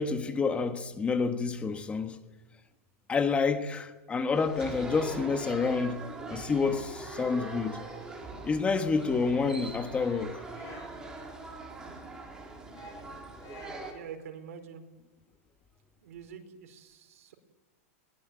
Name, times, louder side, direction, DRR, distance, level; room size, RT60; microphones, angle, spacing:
voice 1, 0.0-2.2 3.1-6.0 6.3-7.8 8.4-10.4, left 4 dB, 15° left, 1.4 m, -28 dB
sound 1, 4.3-13.9, right 3 dB, 10° right, 4.2 m, -42 dB
sound 2, 9.9-11.2 12.7-14.1, left 5 dB, 35° left, 7.0 m, -52 dB
voice 2, 13.9-14.8 16.0-17.3, right 7 dB, 75° right, 4.7 m, -45 dB
22.0 x 20.0 x 9.3 m
supercardioid pair, 155°, 8 cm